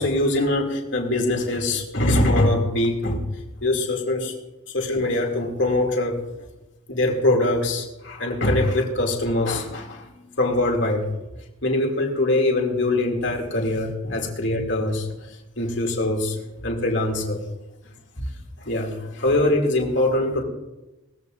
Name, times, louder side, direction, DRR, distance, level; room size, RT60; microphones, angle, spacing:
voice 1, 0.0-3.2 3.6-4.3 4.7-6.2 6.9-10.1 10.4-11.0 11.6-15.1 15.6-16.4 16.6-17.4 18.6-20.4, left 1 dB, 60° left, 1 dB, 2.7 m, -23 dB
20.0 x 15.0 x 2.6 m, 1.0 s
head